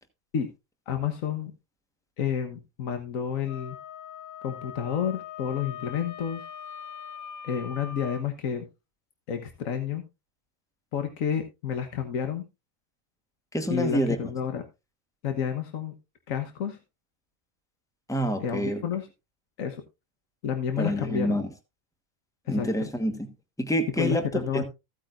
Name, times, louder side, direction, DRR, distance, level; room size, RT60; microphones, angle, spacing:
voice 1, 0.9-1.5 2.2-3.8 4.4-6.4 7.4-8.7 9.3-10.0 10.9-12.4 13.7-14.6 15.2-15.9 16.3-16.8 18.4-19.1 19.6-19.8 20.4-21.4 22.5-22.9 24.0-24.6, left 8 dB, 75° left, 1.5 m, -30 dB
Wind instrument woodwind instrument, 3.4-8.2, left 8 dB, 50° left, 0.8 m, -41 dB
voice 2, 13.5-14.2 18.1-18.8 20.8-21.5 22.5-23.3 23.6-24.2 24.5-24.6, equal, 5° left, 1.1 m, -27 dB
15.5 x 8.6 x 2.5 m
omnidirectional pair, 1.4 m